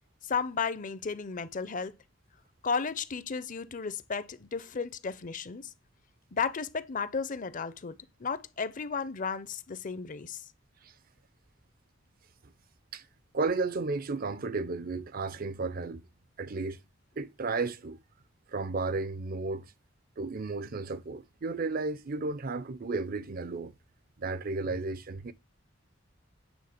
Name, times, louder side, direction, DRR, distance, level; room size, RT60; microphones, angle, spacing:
voice 1, 0.2-2.0 2.6-5.7 6.3-10.4, left 5 dB, 45° left, 0.6 m, -34 dB
voice 2, 13.3-16.0 16.4-16.8 17.2-18.0 18.5-19.7 20.2-23.7 24.2-25.3, right 3 dB, 50° right, 0.6 m, -33 dB
9.1 x 3.7 x 6.6 m
head